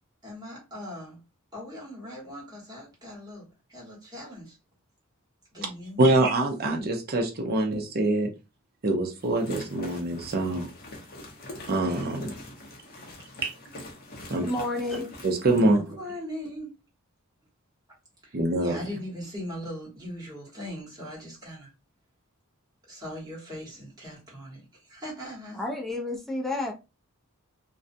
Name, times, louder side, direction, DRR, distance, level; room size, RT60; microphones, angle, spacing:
voice 1, 0.2-1.2 1.5-4.6 5.5-6.0 15.5-16.7 18.2-21.7 22.9-25.6, equal, 20° right, 1.2 m, -40 dB
voice 2, 6.0-8.3 8.8-10.7 11.7-12.3 13.4-13.5 14.3-14.5 15.2-16.0 18.3-18.8, right 2 dB, 45° right, 0.6 m, -24 dB
sound 1, 9.2-15.7, left 1 dB, 45° left, 0.7 m, -44 dB
voice 3, 14.4-15.1 25.5-26.7, left 2 dB, ahead, 0.4 m, -30 dB
2.4 x 2.1 x 2.5 m
head